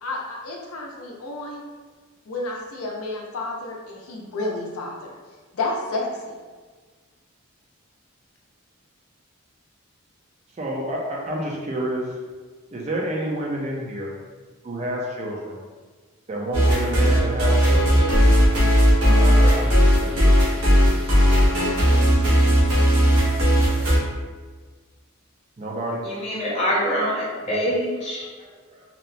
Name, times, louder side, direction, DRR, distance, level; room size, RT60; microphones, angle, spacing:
voice 1, 0.0-1.6 2.3-5.1 5.5-6.3, left 2 dB, 85° left, -1 dB, 0.5 m, -30 dB
voice 2, 10.6-12.1 12.7-14.1 14.6-15.6 16.3-18.0 19.0-20.3 25.6-26.1 27.5-27.6 28.4-28.8, right 1 dB, 30° right, -2 dB, 0.3 m, -29 dB
sound 1, 16.5-24.0, equal, 90° right, 0.9 m, -17 dB
voice 3, 26.0-28.3, equal, 30° left, -6 dB, 0.7 m, -25 dB
2.8 x 2.0 x 2.5 m, 1.4 s
head